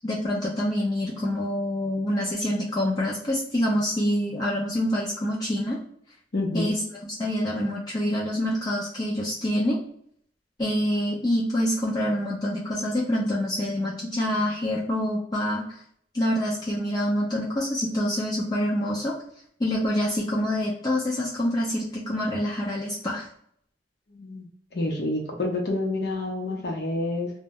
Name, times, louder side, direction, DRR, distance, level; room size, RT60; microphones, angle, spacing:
voice 1, 0.0-5.8 6.5-6.8 7.2-9.8 10.6-15.8 16.1-19.2 19.6-23.3, equal, 20° left, -4 dB, 0.4 m, -26 dB
voice 2, 6.3-6.7 24.1-27.3, left 2 dB, 65° left, -1 dB, 0.7 m, -28 dB
2.1 x 2.0 x 3.4 m, 0.64 s
head